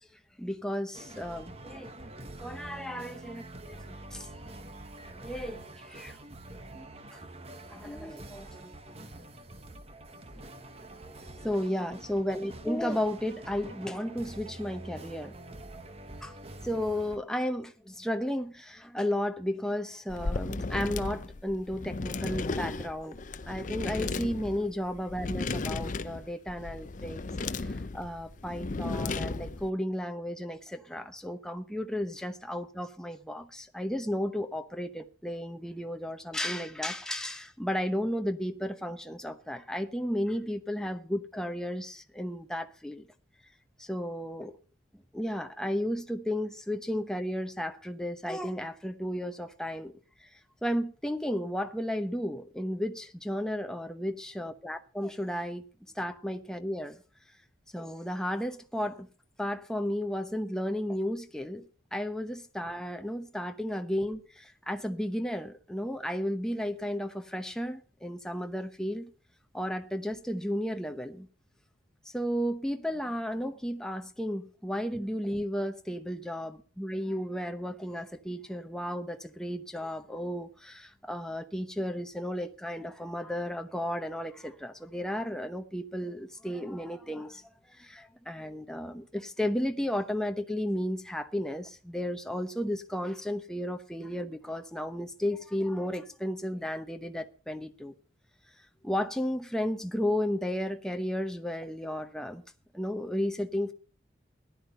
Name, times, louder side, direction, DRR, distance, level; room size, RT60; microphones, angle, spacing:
voice 1, 0.4-1.9 2.4-4.3 5.2-6.2 6.7-7.2 7.7-9.3 11.4-15.3 16.2-16.4 16.6-27.2 27.6-43.1 43.8-44.5 45.1-49.9 50.2-50.3 50.6-55.6 55.9-57.0 57.7-59.1 59.4-69.1 69.5-71.3 72.0-97.9 98.8-102.4 102.7-103.7, equal, 5° left, 0.9 m, -33 dB
sound 1, 0.9-17.2, right 2 dB, 30° right, 1.2 m, -46 dB
sound 2, 20.1-29.7, left 3 dB, 40° left, 0.6 m, -35 dB
14.5 x 11.0 x 5.6 m
head